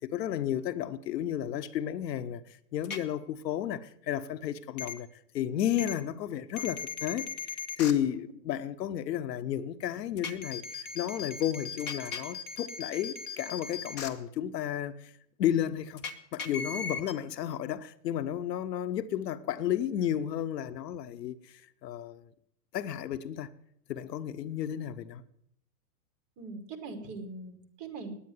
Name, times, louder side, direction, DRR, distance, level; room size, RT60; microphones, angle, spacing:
voice 1, 0.0-2.4 2.7-5.1 5.3-7.3 7.8-15.1 15.4-16.0 16.3-21.4 21.8-22.3 22.7-23.5 23.9-25.2, left 10 dB, 85° left, 1.0 m, -32 dB
sound 1, 2.8-3.0 4.8-4.9 5.8-5.9 6.6-7.9 10.2-14.1 16.0-17.1, left 5 dB, 20° left, 0.8 m, -38 dB
voice 2, 26.4-28.1, right 3 dB, 30° right, 2.4 m, -41 dB
10.0 x 8.9 x 9.4 m
supercardioid pair, 160°, 48 cm